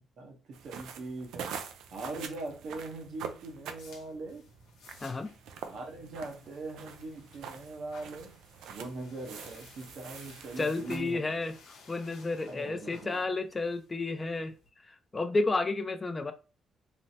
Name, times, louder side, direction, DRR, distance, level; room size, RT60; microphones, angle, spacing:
voice 1, 0.2-1.5 1.9-4.5 5.7-8.4 8.7-11.3 12.5-13.2, right 2 dB, 65° right, 0.9 m, -41 dB
sound 1, 0.5-11.3, right 7 dB, 85° right, 0.4 m, -45 dB
sound 2, 3.3-14.7, left 4 dB, 90° left, 0.7 m, -57 dB
voice 2, 5.0-5.3 10.6-11.5 11.9-14.5 14.9-16.3, left 3 dB, 25° left, 0.4 m, -31 dB
3.2 x 2.0 x 2.8 m
cardioid pair, 90°, 0 cm